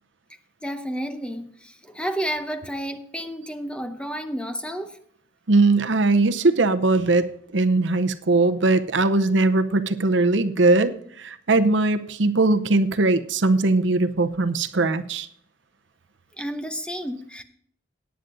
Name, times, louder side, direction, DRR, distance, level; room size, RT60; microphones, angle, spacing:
voice 1, 0.6-5.0 16.4-17.4, equal, 5° left, 8 dB, 0.7 m, -31 dB
voice 2, 5.5-7.3 7.5-15.3, right 2 dB, 65° right, 11 dB, 0.7 m, -20 dB
18.0 x 9.3 x 2.6 m, 0.64 s
head